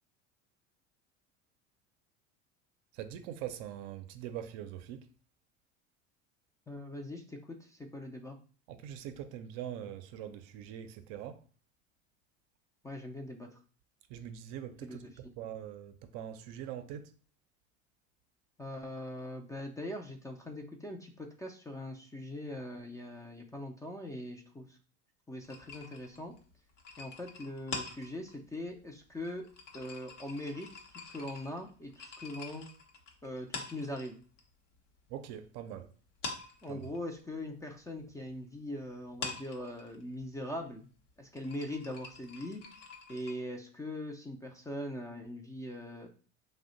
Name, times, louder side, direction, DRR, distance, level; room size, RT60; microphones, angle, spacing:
voice 1, 2.9-5.1 8.7-11.4 14.1-15.0 15.4-17.1 35.1-35.9 36.7-36.9, right 10 dB, 60° right, 0.5 m, -43 dB
voice 2, 6.7-8.4 12.8-13.6 14.8-15.1 18.6-24.8 25.3-26.3 27.0-29.4 29.7-30.7 30.9-32.7 33.2-34.2 36.6-40.9 41.2-42.6 43.1-46.1, left 1 dB, 10° left, 0.3 m, -41 dB
sound 1, 25.4-34.4 34.7-35.8 36.1-43.3, left 4 dB, 85° left, 0.8 m, -46 dB
2.7 x 2.1 x 3.8 m
hypercardioid pair, 85°, 36 cm